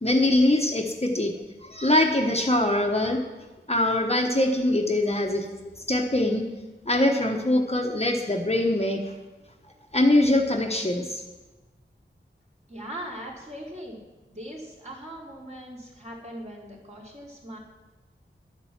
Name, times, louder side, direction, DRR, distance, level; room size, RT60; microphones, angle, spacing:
voice 1, 0.0-1.3 1.6-3.2 3.7-5.4 5.9-6.5 6.9-9.0 9.9-11.2, left 1 dB, 30° left, 2 dB, 1.2 m, -23 dB
voice 2, 12.7-14.0 14.3-17.6, right 1 dB, 35° right, -4 dB, 3.9 m, -40 dB
10.5 x 8.9 x 7.4 m, 1.2 s
wide cardioid pair, 45°, 20 cm